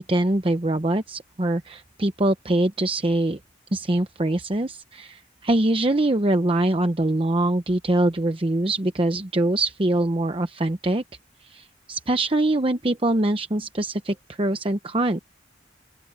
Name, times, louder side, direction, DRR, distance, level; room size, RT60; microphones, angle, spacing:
voice 1, 0.0-3.4 3.7-11.0 11.4-15.2, right 1 dB, 30° right, 0.8 m, -23 dB
open air
head